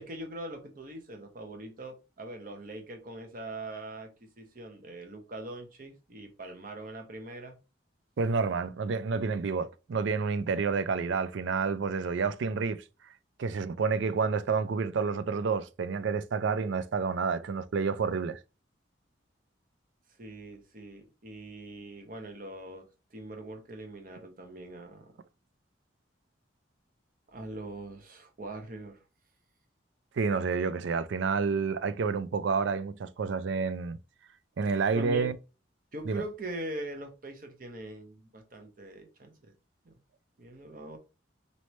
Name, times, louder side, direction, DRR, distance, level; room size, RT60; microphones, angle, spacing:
voice 1, 0.0-7.6 20.2-25.2 27.3-29.0 34.6-35.3 35.9-39.5 39.8-40.0 40.4-41.0, right 1 dB, 45° right, 0.9 m, -42 dB
voice 2, 8.2-12.8 13.4-18.4 30.2-34.0 34.6-35.4 36.1-36.2, right 5 dB, 75° right, 0.4 m, -29 dB
4.1 x 3.1 x 3.1 m
head